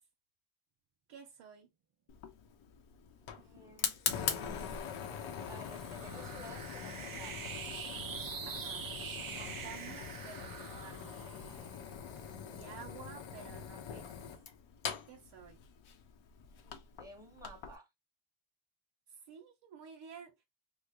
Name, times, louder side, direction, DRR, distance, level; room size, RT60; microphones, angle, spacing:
voice 1, 1.1-1.7 3.4-3.7 8.4-8.9 9.3-11.4 12.5-14.3 15.1-15.6 19.1-20.4, right 7 dB, 70° right, 0.9 m, -52 dB
Fire, 2.1-17.8, left 7 dB, 75° left, 0.9 m, -42 dB
voice 2, 3.4-4.8 5.5-7.6 16.6-17.9, equal, 5° right, 1.3 m, -53 dB
sound 1, 4.1-12.8, right 7 dB, 45° right, 0.7 m, -46 dB
3.2 x 2.2 x 3.6 m
cardioid pair, 105°, 47 cm